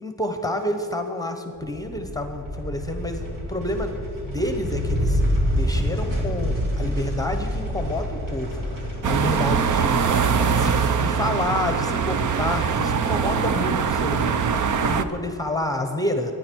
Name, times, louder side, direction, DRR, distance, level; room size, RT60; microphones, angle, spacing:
voice 1, 0.0-3.2 3.5-3.9 4.2-5.2 5.5-8.6 9.0-10.1 10.6-14.5 14.8-16.3, left 1 dB, 10° left, 6 dB, 0.9 m, -28 dB
sound 1, 1.6-12.2, equal, 90° right, 4.4 m, -28 dB
sound 2, 9.0-15.0, right 6 dB, 65° right, 0.8 m, -22 dB
24.5 x 10.0 x 4.6 m, 2.9 s
wide cardioid pair, 175°, 32 cm